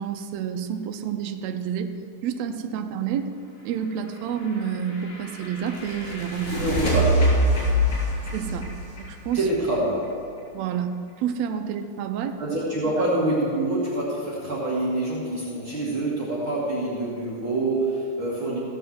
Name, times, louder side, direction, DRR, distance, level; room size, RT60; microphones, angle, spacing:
voice 1, 0.0-1.9 2.2-3.3 3.6-6.6 8.3-8.7 9.1-9.5 10.5-10.9 11.2-12.4 12.9-13.0, right 8 dB, 80° right, 7 dB, 1.5 m, -29 dB
sound 1, 4.3-10.1, equal, 65° left, 4.5 m, -25 dB
voice 2, 6.5-7.3 9.3-10.1 12.4-18.6, right 1 dB, 45° right, -7 dB, 2.3 m, -26 dB
15.5 x 5.6 x 7.7 m, 2.3 s
omnidirectional pair, 3.8 m